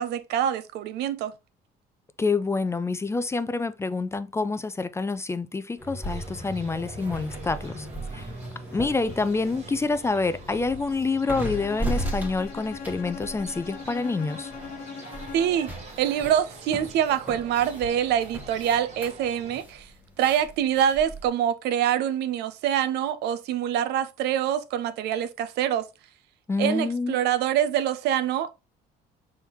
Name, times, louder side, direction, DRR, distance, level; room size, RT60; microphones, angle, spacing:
voice 1, 0.0-1.3 15.3-15.7 16.0-19.9 20.2-25.8 26.6-28.5, right 10 dB, 80° right, 0.6 m, -25 dB
voice 2, 2.2-7.9 8.1-8.2 8.7-14.5 26.5-27.2, left 3 dB, 15° left, 0.4 m, -27 dB
sound 1, 5.8-21.3, right 1 dB, 10° right, 1.2 m, -37 dB
sound 2, 6.1-19.6, right 3 dB, 40° right, 1.7 m, -46 dB
Bowed string instrument, 11.5-15.8, left 6 dB, 60° left, 0.9 m, -40 dB
4.5 x 3.5 x 3.0 m
cardioid pair, 110°, 17 cm